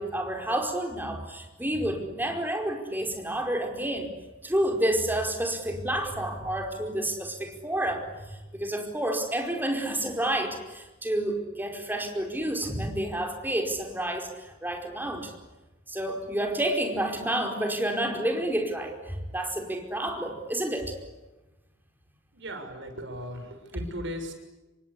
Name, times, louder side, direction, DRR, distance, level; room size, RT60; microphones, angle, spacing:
voice 1, 0.0-4.1 4.4-15.3 15.9-20.9, right 1 dB, 10° right, 4 dB, 4.9 m, -29 dB
voice 2, 22.3-24.3, equal, 65° right, 6 dB, 6.5 m, -37 dB
27.5 x 23.5 x 8.4 m, 1.1 s
head